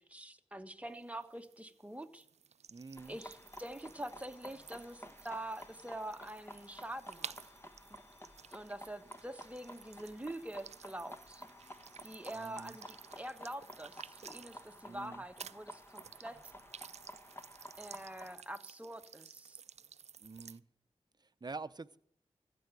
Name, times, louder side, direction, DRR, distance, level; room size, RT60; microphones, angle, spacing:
voice 1, 0.0-2.2 3.1-7.4 8.5-11.4 12.0-16.4 17.8-19.6, right 1 dB, 10° right, 7 dB, 1.3 m, -45 dB
sound 1, 0.8-15.1 15.4-20.6, right 7 dB, 70° right, 0.4 m, -54 dB
voice 2, 2.7-3.2 12.3-12.8 14.8-15.2 20.2-20.6 21.2-22.0, right 3 dB, 35° right, 13 dB, 0.7 m, -47 dB
sound 2, 2.8-14.5, left 2 dB, 75° left, 5.3 m, -71 dB
sound 3, 3.0-18.4, equal, 20° left, 1.4 m, -53 dB
15.0 x 7.0 x 7.9 m, 0.65 s
cardioid pair, 40°, 12 cm